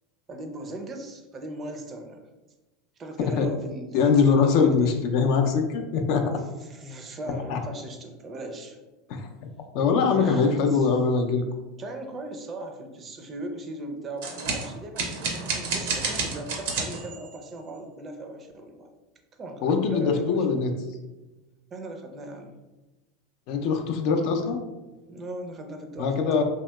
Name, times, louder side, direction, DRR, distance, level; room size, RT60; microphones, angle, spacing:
voice 1, 0.3-2.2 3.0-4.9 6.2-8.8 10.1-10.9 11.8-18.9 19.4-20.6 21.7-22.6 25.1-26.4, right 1 dB, 30° right, 5 dB, 0.4 m, -38 dB
voice 2, 3.9-6.3 7.5-7.6 9.1-9.3 9.7-11.4 19.6-20.7 23.5-24.6 26.0-26.4, left 5 dB, 60° left, 5 dB, 0.4 m, -22 dB
sound 1, 14.2-17.4, right 4 dB, 75° right, 0.6 m, -30 dB
2.8 x 2.8 x 2.2 m, 1.1 s
supercardioid pair, 115°, 0 cm